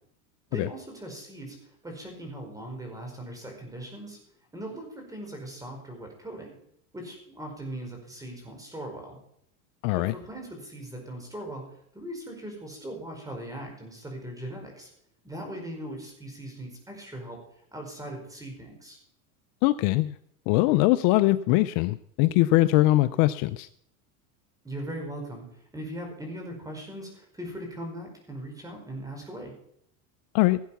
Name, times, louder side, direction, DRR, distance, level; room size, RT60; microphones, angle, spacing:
voice 1, 0.5-4.2 4.5-6.6 6.9-9.2 9.9-14.9 15.2-17.4 17.7-19.0 24.6-29.5, right 1 dB, 10° right, 2 dB, 4.9 m, -39 dB
voice 2, 9.8-10.1 19.6-20.2 20.5-23.7 30.3-30.6, left 18 dB, 55° left, 14 dB, 0.6 m, -22 dB
17.5 x 8.2 x 5.8 m, 0.69 s
supercardioid pair, 130°, 44 cm